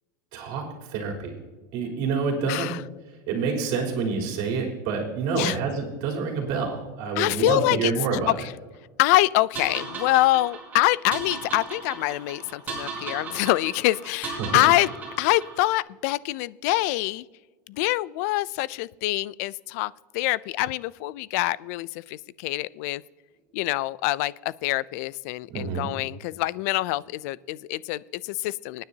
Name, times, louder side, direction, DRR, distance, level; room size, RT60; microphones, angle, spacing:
voice 1, 0.3-1.4 1.7-2.7 3.3-8.4 14.4-14.6 25.5-25.9, right 5 dB, 50° right, 0 dB, 3.6 m, -27 dB
voice 2, 2.5-2.8 5.3-5.6 7.2-8.3 9.0-14.9 15.2-17.3 17.7-23.0 23.5-28.8, left 18 dB, 55° left, 21 dB, 0.4 m, -25 dB
sound 1, 9.6-15.8, right 4 dB, 20° right, 3.9 m, -37 dB
25.0 x 9.8 x 2.8 m, 1.2 s
supercardioid pair, 160°, 10 cm